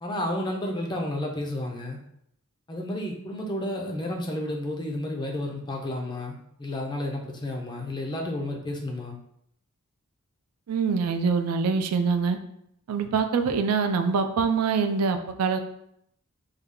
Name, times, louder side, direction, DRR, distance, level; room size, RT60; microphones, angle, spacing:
voice 1, 0.0-2.0 2.7-9.2, left 1 dB, 20° left, 1 dB, 0.4 m, -31 dB
voice 2, 10.7-12.4 12.9-15.6, right 5 dB, 85° right, 7 dB, 0.4 m, -24 dB
3.2 x 2.3 x 3.6 m, 0.73 s
head